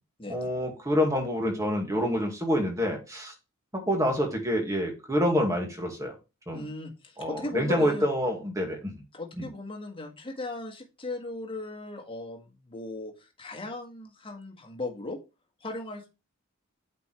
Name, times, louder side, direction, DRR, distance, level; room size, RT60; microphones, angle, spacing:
voice 1, 0.3-3.3 3.7-6.1 6.5-6.7 7.2-8.9 9.4-9.5, equal, 15° right, 1 dB, 2.0 m, -27 dB
voice 2, 6.5-8.1 9.1-15.2 15.6-16.1, left 2 dB, 25° left, 0 dB, 1.6 m, -37 dB
8.3 x 4.4 x 3.3 m, 0.28 s
head